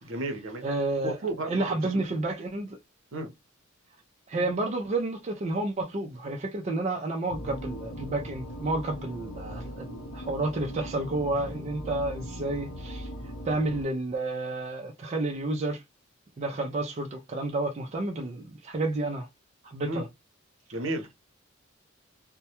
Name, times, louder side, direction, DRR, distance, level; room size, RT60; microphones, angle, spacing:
voice 1, 0.0-0.6 1.0-1.5 3.1-3.3 19.8-20.0 20.7-21.1, right 2 dB, 70° right, 0.7 m, -32 dB
voice 2, 0.6-1.2 1.4-2.8 4.3-13.1 13.4-15.8 16.4-19.3 19.6-20.1, right 2 dB, 35° right, 0.4 m, -30 dB
sound 1, 7.3-13.8, equal, 85° left, 0.7 m, -39 dB
2.2 x 2.1 x 2.8 m
head